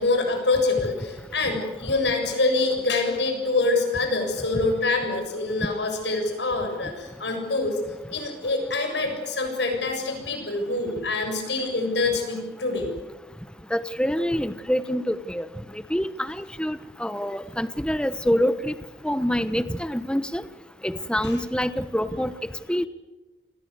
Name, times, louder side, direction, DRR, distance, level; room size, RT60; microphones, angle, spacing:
voice 1, 0.0-7.8 8.1-12.9, left 3 dB, 80° left, 4 dB, 7.4 m, -25 dB
voice 2, 13.7-15.5 15.7-18.7 19.0-20.4 20.8-22.3 22.7-22.9, equal, 5° left, 13 dB, 1.0 m, -26 dB
29.5 x 20.5 x 8.2 m, 1.2 s
head